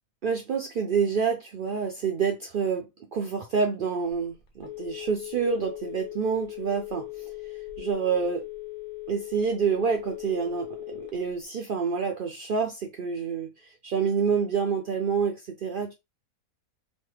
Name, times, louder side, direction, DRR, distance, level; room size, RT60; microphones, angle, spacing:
voice 1, 0.2-7.3 7.8-8.4 9.1-15.9, right 6 dB, 80° right, 0.4 m, -28 dB
Telephone, 4.1-11.4, left 19 dB, 80° left, 1.2 m, -39 dB
3.1 x 2.2 x 3.2 m
omnidirectional pair, 1.5 m